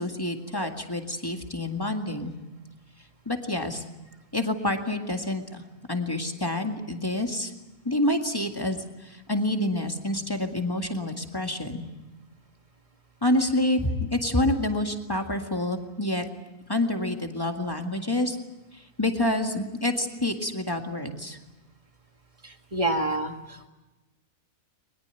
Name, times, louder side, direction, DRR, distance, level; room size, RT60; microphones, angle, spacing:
voice 1, 0.0-2.3 3.3-3.8 4.3-5.6 5.9-7.5 7.9-11.8 13.2-16.2 16.7-18.4 19.0-21.4, left 1 dB, 15° left, 4 dB, 2.0 m, -27 dB
voice 2, 22.4-23.7, right 2 dB, 25° right, 5 dB, 2.0 m, -28 dB
22.0 x 21.5 x 9.2 m, 1.1 s
omnidirectional pair, 1.5 m